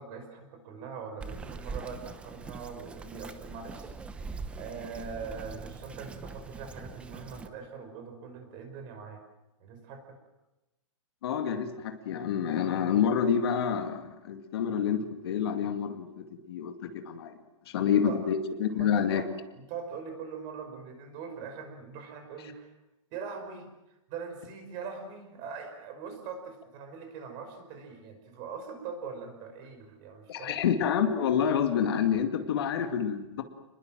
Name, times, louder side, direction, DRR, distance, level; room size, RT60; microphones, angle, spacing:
voice 1, 0.0-3.9 4.5-9.2 9.6-10.2 17.7-18.2 18.7-22.7 23.1-23.7 24.1-30.6, right 5 dB, 25° right, 6 dB, 5.5 m, -42 dB
Bird vocalization bird call bird song, 1.2-7.5, right 4 dB, 5° right, 0.8 m, -42 dB
voice 2, 11.2-17.3 17.7-19.2 30.3-33.4, left 8 dB, 50° left, 6 dB, 2.2 m, -28 dB
29.5 x 21.5 x 7.6 m, 1.0 s
hypercardioid pair, 165°, 17 cm